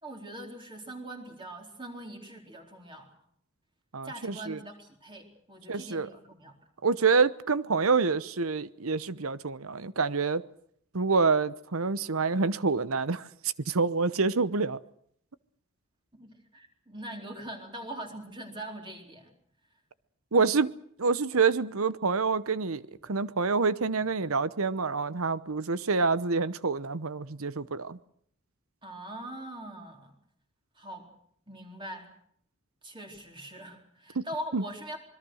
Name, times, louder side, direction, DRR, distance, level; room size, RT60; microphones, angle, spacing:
voice 1, 0.0-3.1 4.0-6.5 16.1-19.3 23.0-23.2 28.8-30.1 30.7-31.1 31.5-32.1 32.8-35.0, right 1 dB, 20° right, 4.1 m, -42 dB
voice 2, 3.9-4.6 5.7-6.1 6.8-10.4 10.9-13.3 13.7-14.8 20.3-20.7 21.0-22.8 23.1-28.0 34.2-34.3 34.5-34.6, right 4 dB, 75° right, 0.9 m, -27 dB
26.0 x 22.0 x 6.4 m
head